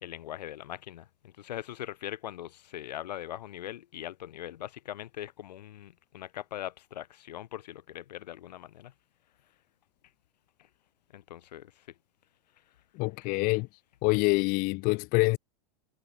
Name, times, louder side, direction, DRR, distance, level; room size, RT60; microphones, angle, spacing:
voice 1, 0.0-8.9 11.1-11.7, left 12 dB, 90° left, 3.0 m, -41 dB
voice 2, 13.0-13.7 14.0-15.4, left 26 dB, 45° left, 0.6 m, -26 dB
supercardioid pair, 130°, 21 cm